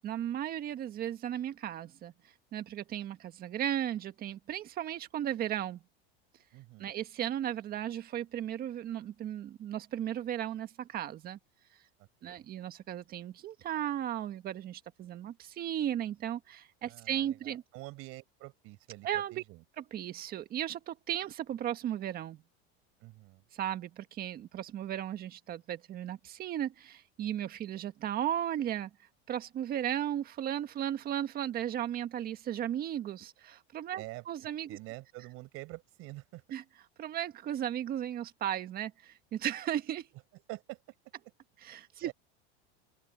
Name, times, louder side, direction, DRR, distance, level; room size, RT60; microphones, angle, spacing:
voice 1, 0.0-2.1 2.5-5.8 6.8-11.4 12.2-17.6 19.0-19.4 19.8-22.4 23.5-28.9 29.3-34.8 36.5-36.6 37.0-40.1 41.6-42.1, right 11 dB, 30° right, 1.6 m, -35 dB
voice 2, 6.5-6.9 12.0-12.5 16.8-19.6 23.0-23.4 34.0-34.2 34.7-36.4 40.5-40.8 42.0-42.1, right 21 dB, 45° right, 5.9 m, -47 dB
open air
supercardioid pair, 155°, 32 cm